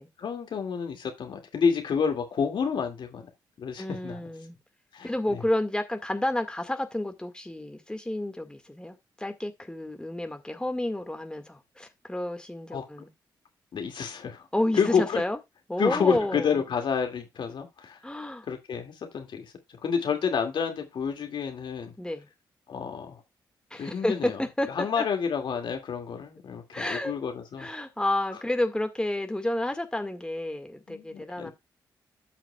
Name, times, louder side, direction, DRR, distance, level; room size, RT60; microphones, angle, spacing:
voice 1, 0.2-3.3 3.6-4.3 4.9-5.1 12.7-12.9 13.7-14.4 14.7-15.2 15.8-18.0 18.5-19.5 19.8-21.9 22.7-23.2 23.8-24.4 24.7-27.7 30.9-31.5, left 6 dB, 65° left, 2.3 m, -29 dB
voice 2, 3.8-4.6 5.0-13.1 14.5-15.4 15.7-16.5 18.0-18.5 22.0-22.3 23.7-25.1 26.7-27.1 27.6-31.5, left 1 dB, 10° left, 1.8 m, -30 dB
15.0 x 5.9 x 2.3 m
supercardioid pair, 50°, 9 cm